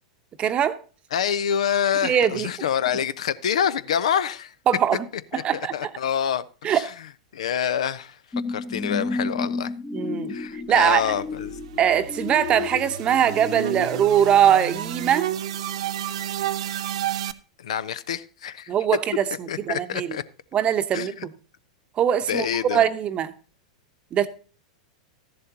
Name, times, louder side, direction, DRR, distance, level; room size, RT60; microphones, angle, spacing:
voice 1, 0.4-0.8 2.0-2.5 4.7-5.1 5.3-5.9 6.6-6.9 9.9-10.4 10.7-11.0 11.8-15.3 18.7-19.2 19.7-20.1 20.5-21.3 22.0-23.3 24.1-24.3, right 9 dB, 30° right, 0.9 m, -21 dB
voice 2, 1.1-4.5 5.3-6.9 7.3-8.2 8.5-9.7 10.3-11.6 17.6-18.7 19.5-20.2 20.9-21.3 22.3-22.9, left 8 dB, 65° left, 0.6 m, -26 dB
sound 1, 8.3-15.7 16.2-16.3, left 4 dB, 15° left, 0.8 m, -33 dB
sound 2, 10.9-17.3, right 12 dB, 65° right, 0.6 m, -31 dB
13.5 x 11.0 x 2.8 m
figure-of-eight pair, 95°, 4 cm